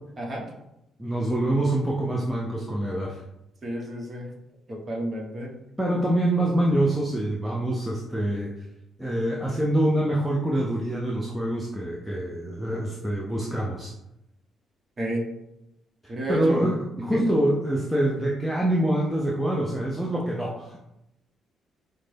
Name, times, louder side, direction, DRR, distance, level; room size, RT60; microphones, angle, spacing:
voice 1, 1.0-3.2 5.8-8.5 9.0-13.9 16.0-20.8, right 1 dB, 5° right, -4 dB, 0.6 m, -25 dB
voice 2, 3.6-4.3 4.7-5.5 15.0-15.2 16.1-16.7 17.1-17.2, right 1 dB, 35° right, -1 dB, 1.1 m, -30 dB
5.0 x 2.2 x 3.3 m, 0.86 s
cardioid pair, 90°, 0 cm